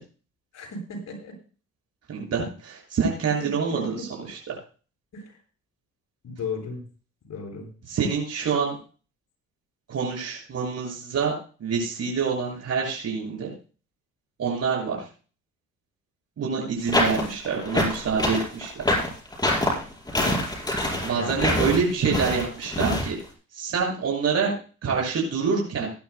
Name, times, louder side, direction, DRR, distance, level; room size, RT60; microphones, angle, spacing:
voice 1, 0.5-1.3 3.4-4.0 5.1-5.3 6.2-6.8 7.3-7.7 20.1-20.4 21.1-21.3, left 3 dB, 60° left, -1 dB, 7.5 m, -35 dB
voice 2, 2.1-4.4 7.9-8.8 9.9-11.3 11.6-13.5 14.4-15.1 16.4-18.7 21.0-23.2 23.5-24.5 24.8-25.9, right 5 dB, 55° right, -1 dB, 6.9 m, -26 dB
sound 1, 16.9-23.1, left 1 dB, 15° left, 5.3 m, -25 dB
19.0 x 12.0 x 2.3 m, 0.38 s
cardioid pair, 90°, 30 cm